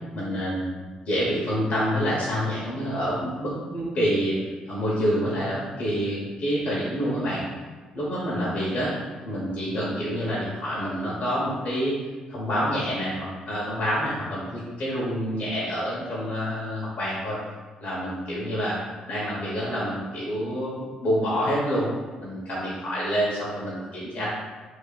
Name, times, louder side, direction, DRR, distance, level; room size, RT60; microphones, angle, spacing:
voice 1, 0.1-0.8 1.1-4.4 4.7-7.4 7.9-8.9 9.2-11.9 12.3-17.4 17.8-18.8 19.1-21.9 22.2-24.3, equal, 60° left, -7 dB, 1.0 m, -27 dB
2.8 x 2.5 x 3.9 m, 1.4 s
supercardioid pair, 60°, 3 cm